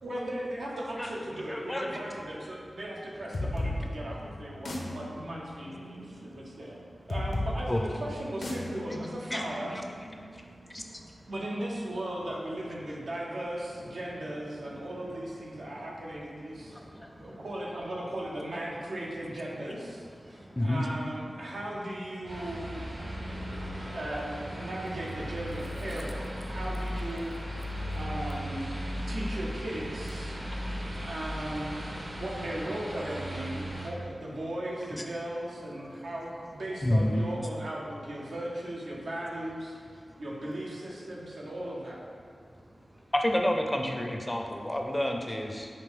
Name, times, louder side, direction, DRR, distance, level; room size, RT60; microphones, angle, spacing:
voice 1, 0.0-6.8 7.1-9.7 11.3-16.8 17.2-22.8 23.3-28.7 29.1-30.4 31.0-42.0, right 1 dB, 90° right, -4 dB, 0.7 m, -37 dB
voice 2, 1.5-2.0 4.1-4.2 7.7-7.8 8.8-9.0 9.3-9.4 9.7-9.8 10.7-10.8 20.6-20.8 34.9-35.0 36.8-37.1 43.1-45.7, left 1 dB, 20° left, 2 dB, 0.4 m, -29 dB
sound 1, 3.3-10.7, left 1 dB, 75° left, 0.6 m, -37 dB
voice 3, 10.3-11.3 14.8-14.9 16.6-17.4 20.2-20.6 23.2-24.0 25.7-25.9 26.5-26.6 27.8-28.0 28.8-29.1 30.2-31.1 32.0-32.2 35.9-36.0, equal, 30° right, 1 dB, 0.6 m, -51 dB
sound 2, 22.2-33.9, equal, 60° right, 0.8 m, -37 dB
5.1 x 2.6 x 3.6 m, 2.1 s
wide cardioid pair, 60°, 0 cm